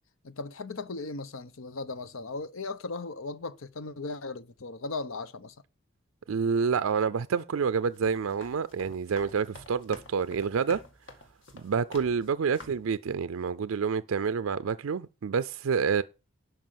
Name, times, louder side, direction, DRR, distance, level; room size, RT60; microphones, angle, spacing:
voice 1, 0.2-5.5, left 3 dB, 80° left, 0.8 m, -37 dB
voice 2, 6.3-10.8 11.5-16.0, right 6 dB, 85° right, 0.4 m, -28 dB
sound 1, 7.8-12.3 12.5-12.9, left 2 dB, 60° left, 2.0 m, -49 dB
11.5 x 4.9 x 7.5 m
head